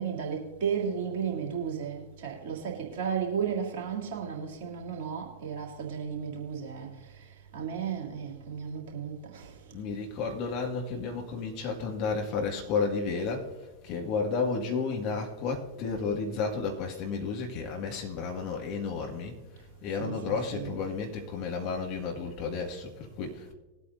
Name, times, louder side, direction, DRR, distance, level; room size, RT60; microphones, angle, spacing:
voice 1, 0.0-9.6 20.0-20.8, right 7 dB, 50° right, 2.9 m, -34 dB
voice 2, 9.7-13.5 13.8-19.4 19.8-23.5, left 4 dB, 40° left, 2.0 m, -32 dB
21.0 x 8.5 x 2.7 m
figure-of-eight pair, 90°, 0 cm